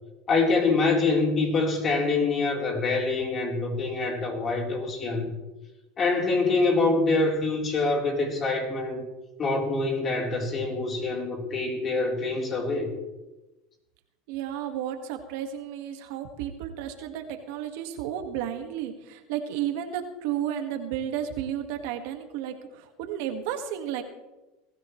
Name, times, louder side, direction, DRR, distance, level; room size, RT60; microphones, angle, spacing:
voice 1, 0.3-5.3 6.0-9.1 9.4-12.9, left 3 dB, 30° left, 0 dB, 4.0 m, -25 dB
voice 2, 14.3-24.0, right 10 dB, 70° right, 5 dB, 1.8 m, -32 dB
20.5 x 14.0 x 3.2 m, 1.1 s
supercardioid pair, 110°, 0 cm